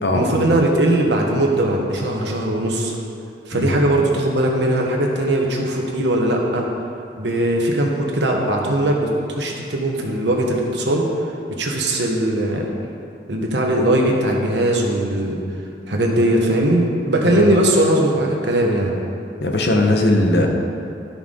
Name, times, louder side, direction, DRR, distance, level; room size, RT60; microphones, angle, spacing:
voice 1, 0.1-2.9 3.5-6.7 7.2-9.1 9.4-11.0 11.5-12.7 13.3-15.4 15.9-18.9, right 1 dB, 80° right, 0 dB, 1.3 m, -19 dB
voice 2, 19.4-20.5, left 1 dB, 65° left, 2 dB, 1.0 m, -18 dB
12.5 x 5.8 x 3.8 m, 2.6 s
head